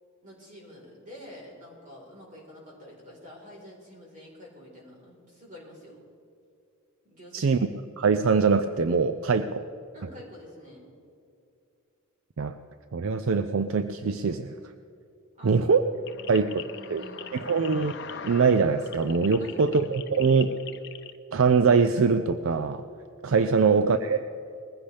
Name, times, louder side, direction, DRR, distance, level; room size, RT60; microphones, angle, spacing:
voice 1, 0.2-6.0 7.0-7.7 9.9-10.9 15.4-15.7 16.1-17.5 19.4-20.2 23.5-23.8, left 1 dB, 40° right, -2 dB, 4.2 m, -48 dB
voice 2, 7.3-7.7 8.0-9.6 12.4-12.6 12.9-14.5 15.4-15.8 16.3-16.5 16.9-17.0 17.3-17.9 18.2-20.6 21.3-22.8 23.2-24.2, right 5 dB, 70° right, 10 dB, 0.5 m, -23 dB
sound 1, 16.1-21.1, left 7 dB, 55° left, 0.8 m, -42 dB
20.5 x 15.5 x 3.4 m, 2.5 s
head